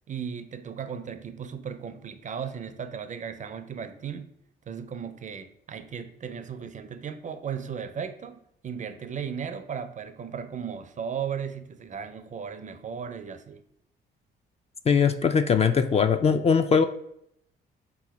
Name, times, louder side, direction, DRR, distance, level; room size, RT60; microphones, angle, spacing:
voice 1, 0.1-4.3 4.7-13.6, right 7 dB, 40° right, 10 dB, 0.4 m, -36 dB
voice 2, 14.9-16.8, left 6 dB, 30° left, 9 dB, 0.3 m, -21 dB
3.7 x 3.0 x 4.7 m, 0.74 s
cardioid pair, 90°, 20 cm